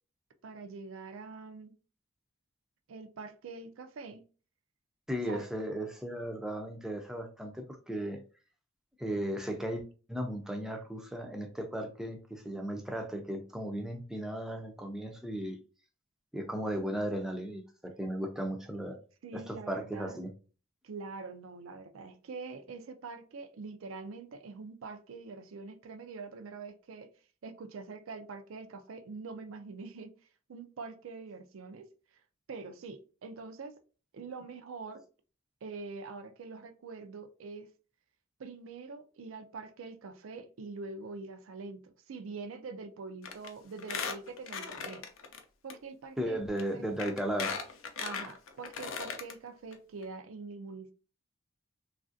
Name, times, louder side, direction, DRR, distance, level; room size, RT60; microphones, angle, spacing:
voice 1, 0.4-1.7 2.9-4.2 5.3-5.4 19.2-20.2 20.8-27.1 27.4-30.1 30.5-31.9 32.5-33.7 34.1-35.0 35.6-37.7 38.4-45.0 45.6-46.4 46.7-46.9 48.0-50.9, right 4 dB, 80° right, 0.4 m, -44 dB
voice 2, 5.1-8.2 9.0-15.6 16.3-19.0 19.3-20.3 46.2-47.6, equal, 5° right, 0.4 m, -36 dB
Squeak, 43.2-43.5 43.8-45.4 45.7-45.8 46.6-46.7 47.0-49.3 49.7-49.8 50.0-50.1, left 6 dB, 80° left, 0.5 m, -37 dB
3.2 x 2.4 x 2.5 m
head